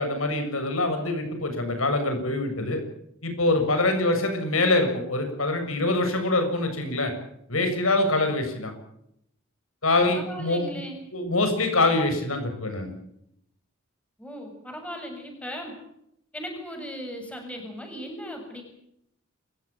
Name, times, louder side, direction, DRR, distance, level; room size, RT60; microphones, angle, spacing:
voice 1, 0.0-2.8 3.2-7.1 7.5-8.7 9.8-10.7 11.1-12.9, left 2 dB, 80° left, 6 dB, 7.3 m, -24 dB
voice 2, 10.1-11.0 14.2-15.7 16.3-18.6, equal, 5° left, 3 dB, 7.3 m, -37 dB
28.5 x 15.5 x 9.0 m, 0.76 s
head